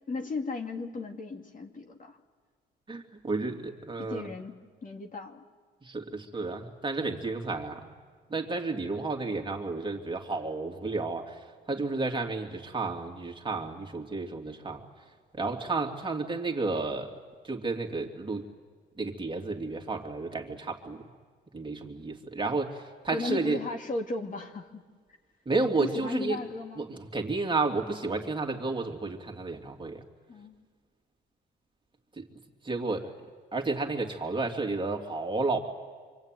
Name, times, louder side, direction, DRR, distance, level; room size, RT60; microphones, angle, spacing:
voice 1, 0.1-2.2 4.0-5.4 23.1-24.8 25.8-26.9 30.3-30.6, left 3 dB, 40° left, 3 dB, 2.5 m, -35 dB
voice 2, 2.9-4.3 5.8-7.9 8.3-14.8 15.3-17.2 17.4-18.5 19.0-21.0 21.5-23.6 25.5-26.4 26.8-30.0 32.2-32.3 32.6-33.1 33.5-35.6, right 3 dB, 25° right, 2 dB, 2.8 m, -32 dB
25.5 x 24.5 x 9.2 m, 1.6 s
cardioid pair, 90°, 20 cm